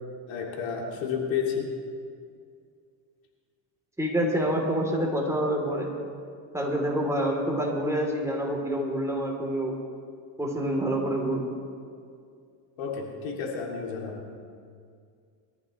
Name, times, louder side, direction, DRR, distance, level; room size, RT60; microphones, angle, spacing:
voice 1, 0.3-1.7 12.8-14.2, left 6 dB, 75° left, -1 dB, 3.0 m, -31 dB
voice 2, 4.0-5.9 6.5-9.8 10.4-11.5, equal, 5° right, -1 dB, 3.5 m, -27 dB
22.5 x 14.5 x 3.3 m, 2.2 s
supercardioid pair, 105°, 46 cm